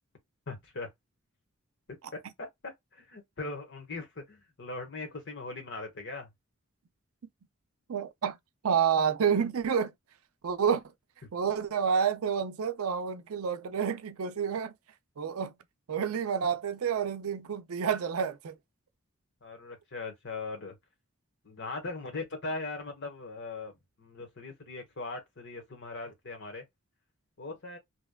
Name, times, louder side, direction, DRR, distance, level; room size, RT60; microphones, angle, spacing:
voice 1, 0.5-0.9 1.9-6.3 19.4-20.7 21.4-26.7 27.4-27.8, left 3 dB, 55° left, 1.1 m, -40 dB
voice 2, 7.9-8.4 8.6-9.9 10.4-10.8 11.3-14.7 15.2-15.5 15.9-18.6, right 7 dB, 80° right, 0.5 m, -29 dB
2.9 x 2.2 x 2.2 m
head